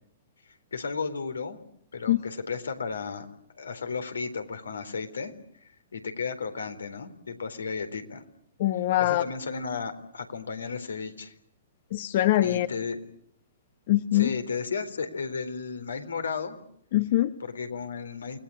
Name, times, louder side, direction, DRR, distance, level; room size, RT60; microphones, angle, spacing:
voice 1, 0.7-1.6 1.9-3.3 3.6-5.3 5.9-8.2 9.0-11.3 12.4-13.0 14.1-16.6 17.4-18.4, left 5 dB, 85° left, 10 dB, 3.9 m, -34 dB
voice 2, 8.6-9.2 11.9-12.7 13.9-14.3 16.9-17.3, left 14 dB, 55° left, 11 dB, 1.3 m, -23 dB
29.0 x 20.5 x 8.7 m, 0.70 s
hypercardioid pair, 120°, 0 cm